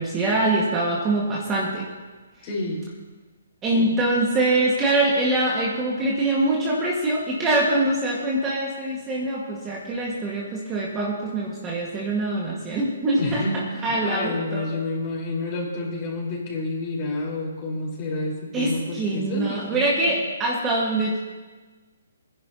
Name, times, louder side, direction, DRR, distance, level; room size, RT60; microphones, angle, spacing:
voice 1, 0.0-1.9 3.6-13.4 13.8-14.8 18.5-21.2, right 2 dB, 15° right, -4 dB, 1.8 m, -24 dB
voice 2, 2.4-2.8 3.7-3.9 13.1-20.1, left 2 dB, 30° left, -3 dB, 4.5 m, -29 dB
21.0 x 10.5 x 2.9 m, 1.3 s
hypercardioid pair, 150°, 0 cm